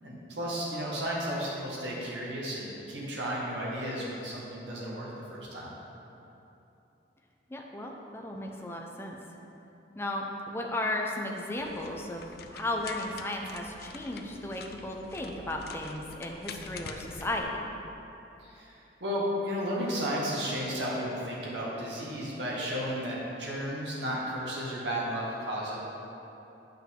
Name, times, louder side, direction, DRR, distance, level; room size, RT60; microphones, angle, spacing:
voice 1, 0.0-5.7 18.4-25.8, equal, 75° right, -5 dB, 1.8 m, -33 dB
voice 2, 7.5-9.2 10.0-12.2 12.5-17.6, left 1 dB, 15° left, 0 dB, 0.6 m, -35 dB
sound 1, 11.6-17.4, left 5 dB, 55° left, 0.4 m, -46 dB
9.2 x 5.7 x 3.7 m, 2.9 s
head